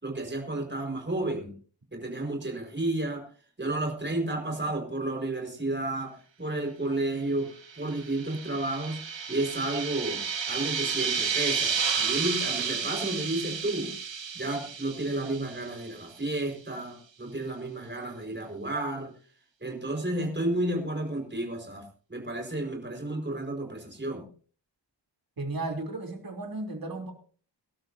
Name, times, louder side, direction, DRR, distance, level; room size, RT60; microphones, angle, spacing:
voice 1, 0.0-1.5 1.9-3.2 3.6-9.0 9.3-13.9 14.3-19.1 19.6-21.8 22.1-24.3, right 2 dB, 25° right, 2 dB, 4.9 m, -32 dB
sound 1, 7.7-16.0, right 6 dB, 80° right, 2.0 m, -31 dB
voice 2, 25.4-27.1, right 2 dB, 50° right, 3 dB, 3.3 m, -34 dB
23.5 x 12.5 x 2.7 m, 0.41 s
wide cardioid pair, 110°, 44 cm